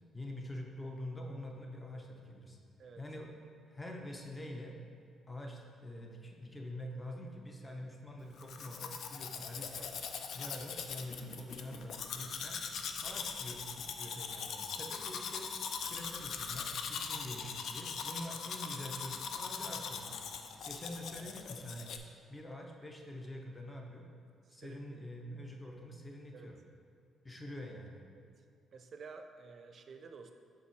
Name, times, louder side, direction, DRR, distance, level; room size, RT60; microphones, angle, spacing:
voice 1, 0.1-2.6 3.0-3.3 3.7-4.8 5.3-9.9 10.3-12.6 13.0-15.5 15.8-20.2 20.7-21.9 22.3-24.1 24.5-26.6 27.2-28.1, left 1 dB, 15° left, 1 dB, 0.8 m, -46 dB
Domestic sounds home sounds, 8.4-22.0, left 6 dB, 70° left, 0.4 m, -41 dB
voice 2, 24.5-24.8 26.3-26.5 28.1-28.3 28.7-30.3, right 5 dB, 50° right, 6 dB, 0.5 m, -51 dB
5.8 x 3.8 x 4.5 m, 2.4 s
cardioid pair, 90°, 0 cm